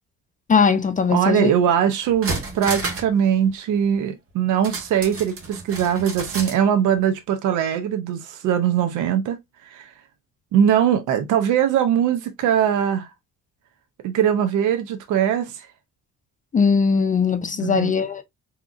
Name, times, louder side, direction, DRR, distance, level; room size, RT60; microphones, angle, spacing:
voice 1, 0.5-1.5 16.5-18.2, left 5 dB, 25° left, 0.5 m, -19 dB
voice 2, 1.1-9.4 9.7-9.9 10.5-13.1 14.0-15.7 17.6-17.9, right 9 dB, 85° right, 0.6 m, -21 dB
Alluminium Parts Moving, 1.6-1.7 2.0-3.2 3.4-3.5 4.6-6.6 6.9-7.0, right 3 dB, 50° right, 1.3 m, -30 dB
3.6 x 2.8 x 2.3 m
cardioid pair, 90°, 30 cm